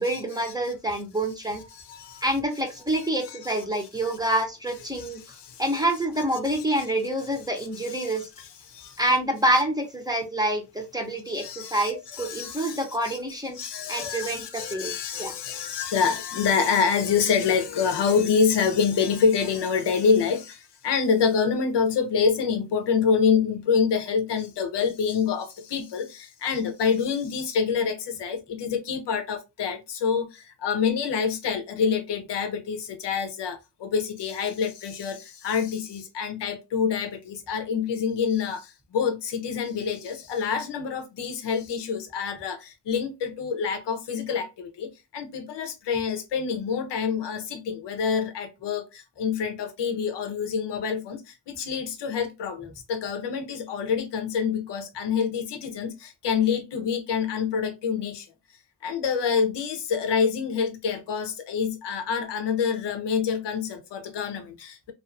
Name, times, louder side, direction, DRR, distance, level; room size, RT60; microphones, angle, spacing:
voice 1, 0.0-1.6 2.2-5.2 5.6-8.3 9.0-13.6 13.9-14.9 15.2-15.3, right 1 dB, 10° right, 0.6 m, -27 dB
voice 2, 1.7-2.3 2.9-3.9 5.0-5.6 7.6-9.0 11.3-13.2 13.5-58.3 58.8-64.9, left 6 dB, 85° left, 0.7 m, -27 dB
2.4 x 2.4 x 2.4 m
wide cardioid pair, 105°, 41 cm